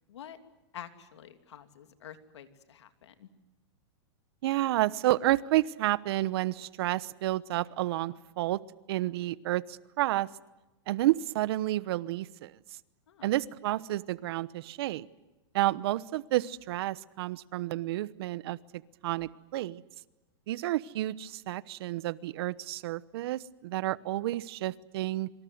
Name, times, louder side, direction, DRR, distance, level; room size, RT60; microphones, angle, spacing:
voice 1, 0.7-3.3 13.1-13.3, left 9 dB, 85° left, 9 dB, 2.9 m, -48 dB
voice 2, 4.4-8.6 8.9-10.3 10.9-12.5 13.2-15.1 15.5-18.6 19.0-19.8 20.5-25.3, right 15 dB, 60° right, 19 dB, 1.0 m, -30 dB
26.5 x 25.0 x 8.0 m, 1.1 s
hypercardioid pair, 135°, 14 cm